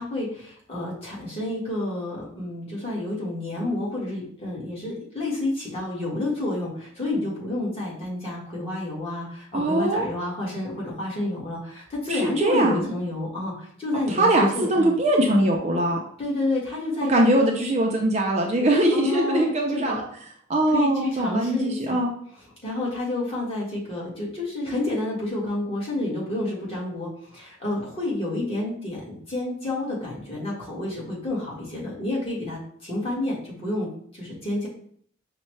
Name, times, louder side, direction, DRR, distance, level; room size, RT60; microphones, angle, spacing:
voice 1, 0.0-14.9 16.2-17.5 18.9-20.0 20.7-22.0 22.6-34.7, left 2 dB, 30° left, -6 dB, 1.5 m, -29 dB
voice 2, 9.5-10.1 12.1-12.9 14.1-16.0 17.1-20.0 20.5-22.1, right 1 dB, 35° right, 0 dB, 0.5 m, -21 dB
5.3 x 2.2 x 3.1 m, 0.62 s
head